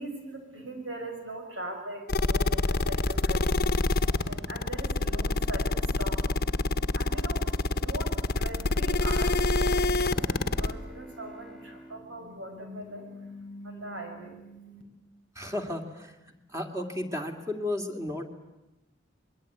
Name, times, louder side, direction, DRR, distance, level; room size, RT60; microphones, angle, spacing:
voice 1, 0.0-3.8 4.2-6.7 6.9-14.8, right 1 dB, 80° right, 4 dB, 6.4 m, -41 dB
sound 1, 2.1-10.7, left 2 dB, 55° left, 1.0 m, -26 dB
Bowed string instrument, 8.4-13.4, right 1 dB, ahead, 2.0 m, -49 dB
voice 2, 15.4-18.3, left 1 dB, 15° right, 4 dB, 2.5 m, -34 dB
26.0 x 21.5 x 9.4 m, 0.96 s
head